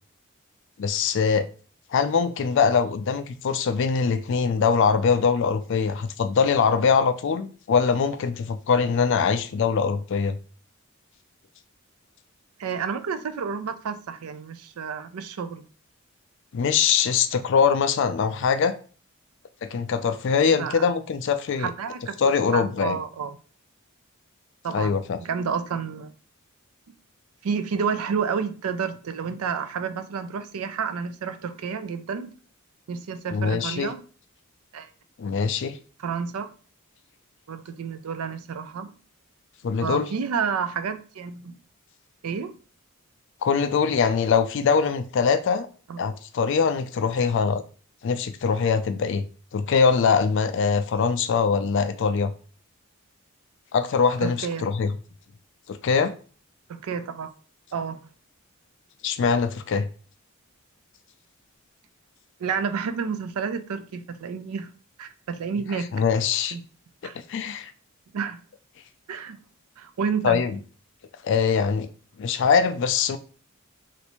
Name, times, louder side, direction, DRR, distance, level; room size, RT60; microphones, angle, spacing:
voice 1, 0.8-1.5 1.9-10.4 16.5-18.7 19.6-21.7 22.2-23.0 24.7-25.2 33.3-33.9 35.2-35.8 39.6-40.1 43.4-45.7 46.0-47.6 48.0-49.2 49.5-52.3 53.7-54.9 55.7-56.1 59.0-59.9 65.9-66.6 67.3-67.7 70.2-70.6 71.2-71.9 72.2-73.2, left 6 dB, 60° left, 0.3 m, -22 dB
voice 2, 12.6-15.7 20.5-20.9 21.6-22.1 22.5-23.4 24.6-26.1 27.4-32.3 32.9-34.0 34.7-34.9 36.0-36.5 37.5-39.0 39.8-41.6 42.2-42.6 45.9-46.0 54.2-54.7 56.7-57.3 57.7-58.0 62.4-64.7 65.0-65.9 66.5-66.6 67.0-67.1 68.1-68.4 69.1-69.4 69.8-70.4, right 6 dB, 85° right, 0.4 m, -30 dB
3.2 x 2.6 x 2.9 m
head